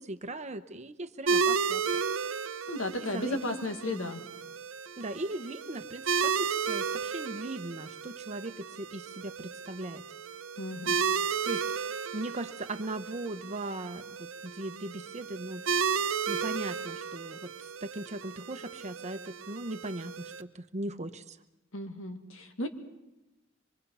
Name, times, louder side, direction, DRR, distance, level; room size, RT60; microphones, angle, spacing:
voice 1, 0.0-1.8 3.0-4.1 5.0-10.0 11.4-15.6 16.3-21.4, right 2 dB, 35° right, 10 dB, 1.0 m, -39 dB
sound 1, 1.3-20.4, right 6 dB, 90° right, 0.8 m, -33 dB
voice 2, 2.7-4.2 10.6-11.0 21.7-22.7, left 1 dB, 80° left, 5 dB, 2.2 m, -34 dB
25.0 x 23.0 x 5.6 m, 0.95 s
head